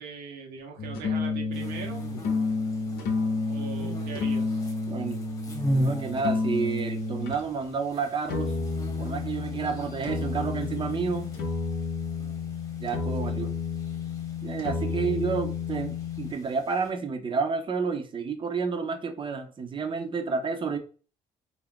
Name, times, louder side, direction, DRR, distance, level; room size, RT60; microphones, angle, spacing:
voice 1, 0.0-2.1 3.5-4.6 13.2-13.6, right 5 dB, 85° right, 1 dB, 0.8 m, -41 dB
sound 1, 0.8-7.4 8.3-16.3, left 4 dB, 75° left, 0.7 m, -30 dB
sound 2, 1.5-16.9, equal, 20° left, 1.1 m, -38 dB
voice 2, 4.9-5.2 5.7-8.5 9.0-11.3 12.8-13.5 14.4-20.8, right 5 dB, 30° right, 7 dB, 0.5 m, -30 dB
2.4 x 2.1 x 3.5 m, 0.37 s
cardioid pair, 95°, 16 cm